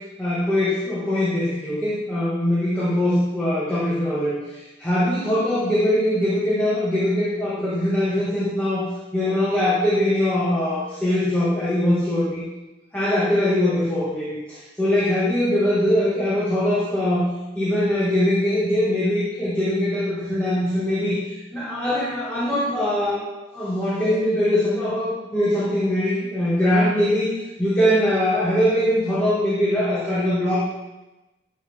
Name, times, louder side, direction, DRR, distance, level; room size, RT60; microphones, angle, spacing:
voice 1, 0.2-4.4 4.8-12.4 12.9-17.2 17.5-21.2 21.5-23.2 23.5-27.3 27.6-30.6, left 1 dB, 10° left, -10 dB, 1.8 m, -22 dB
11.5 x 5.3 x 3.6 m, 1.0 s
head